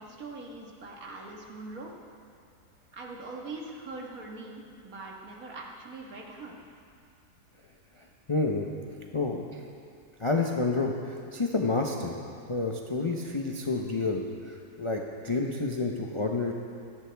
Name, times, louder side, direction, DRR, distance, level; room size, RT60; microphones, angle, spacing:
voice 1, 0.0-1.9 2.9-6.6, right 3 dB, 60° right, -1 dB, 1.9 m, -42 dB
voice 2, 8.3-8.7 9.1-9.6 10.2-12.1 12.5-16.5, left 3 dB, 35° left, 0 dB, 0.4 m, -29 dB
17.5 x 13.5 x 3.4 m, 2.4 s
omnidirectional pair, 1.7 m